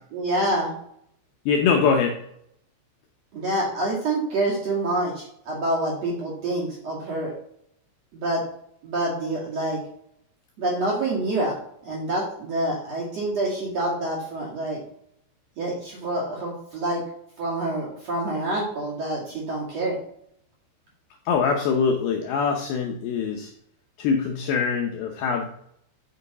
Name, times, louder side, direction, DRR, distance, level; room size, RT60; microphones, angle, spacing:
voice 1, 0.1-0.7 3.3-7.3 8.1-8.4 8.8-9.8 10.6-11.5 11.8-14.8 15.6-17.0 17.4-20.0, right 1 dB, 50° right, -5 dB, 2.3 m, -27 dB
voice 2, 1.5-2.2 21.3-23.5 24.0-25.5, left 5 dB, 80° left, 2 dB, 2.3 m, -23 dB
9.1 x 5.6 x 4.1 m, 0.69 s
omnidirectional pair, 5.3 m